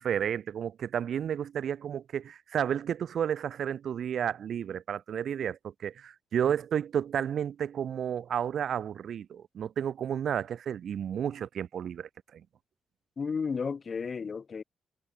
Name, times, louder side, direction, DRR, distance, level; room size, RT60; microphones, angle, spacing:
voice 1, 0.0-12.4, right 9 dB, 60° right, 0.4 m, -32 dB
voice 2, 13.2-14.6, left 5 dB, 35° left, 1.2 m, -33 dB
wide cardioid pair, 165°, 0 cm